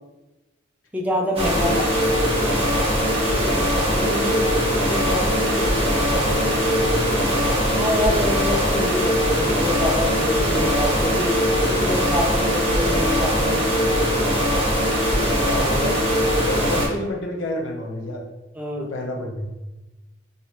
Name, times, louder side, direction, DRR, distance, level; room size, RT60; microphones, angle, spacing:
voice 1, 0.9-1.8 7.7-11.3 11.7-13.6 18.6-18.9, left 1 dB, 10° right, 0 dB, 0.5 m, -26 dB
sound 1, 1.4-16.9, equal, 30° right, 1.1 m, -21 dB
voice 2, 1.5-1.9 3.4-8.4 15.4-16.1 16.4-18.2 18.8-19.5, left 1 dB, 85° left, 0 dB, 0.8 m, -30 dB
3.2 x 2.7 x 3.0 m, 1.0 s
head